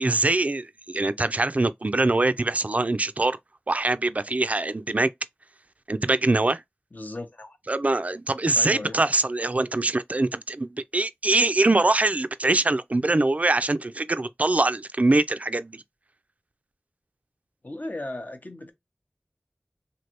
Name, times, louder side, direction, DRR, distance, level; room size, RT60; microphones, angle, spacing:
voice 1, 0.0-3.4 3.7-5.1 5.9-6.6 7.7-15.8, right 2 dB, 35° right, 0.3 m, -23 dB
voice 2, 6.9-7.6 8.5-9.0 17.6-18.7, left 2 dB, 45° left, 0.7 m, -36 dB
3.2 x 2.6 x 2.9 m
wide cardioid pair, 40°, 4 cm